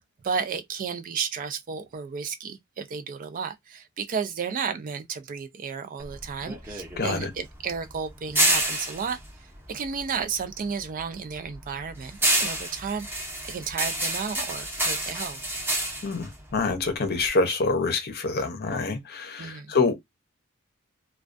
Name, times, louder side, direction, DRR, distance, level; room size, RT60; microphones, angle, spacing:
voice 1, 0.2-9.2 9.7-13.1 13.4-15.4 19.4-19.7, right 6 dB, 40° right, 0.3 m, -33 dB
sound 1, 6.0-10.5 10.8-17.3, right 1 dB, 10° right, 0.6 m, -28 dB
voice 2, 7.0-7.3 16.0-19.9, left 3 dB, 45° left, 0.6 m, -26 dB
2.2 x 2.2 x 2.5 m
head